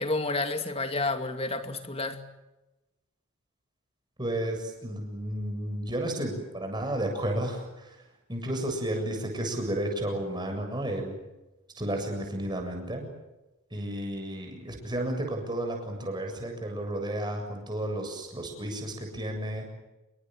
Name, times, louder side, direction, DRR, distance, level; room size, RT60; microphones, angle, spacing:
voice 1, 0.0-2.2, left 2 dB, 25° left, 7 dB, 2.4 m, -30 dB
voice 2, 4.2-8.0 8.3-11.2 11.8-13.0 13.7-19.7, right 1 dB, 20° right, 3 dB, 7.5 m, -32 dB
28.0 x 23.5 x 7.8 m, 1.0 s
head